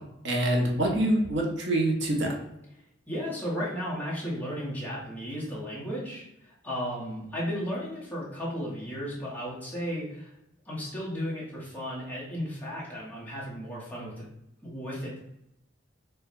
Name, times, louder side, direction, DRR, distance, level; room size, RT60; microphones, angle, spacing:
voice 1, 0.2-2.3, right 1 dB, 60° right, 0 dB, 0.7 m, -25 dB
voice 2, 3.1-10.3 10.6-14.3 14.6-15.2, equal, 10° left, -7 dB, 0.8 m, -34 dB
4.5 x 2.1 x 2.5 m, 0.83 s
head